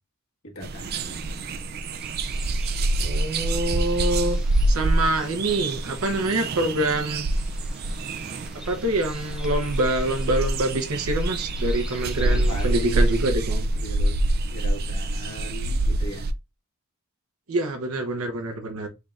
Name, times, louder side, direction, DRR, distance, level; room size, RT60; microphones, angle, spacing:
voice 1, 0.4-1.3 12.1-13.3 13.7-14.2 14.5-16.3, equal, 70° left, 1.6 m, -37 dB
sound 1, 0.6-16.3, right 1 dB, 45° right, 0.4 m, -26 dB
sound 2, 1.9-13.3, equal, 5° right, 0.7 m, -47 dB
voice 2, 3.0-4.4 4.7-7.3 8.6-13.6 17.5-18.9, right 2 dB, 75° right, 0.9 m, -26 dB
6.5 x 3.3 x 2.4 m
head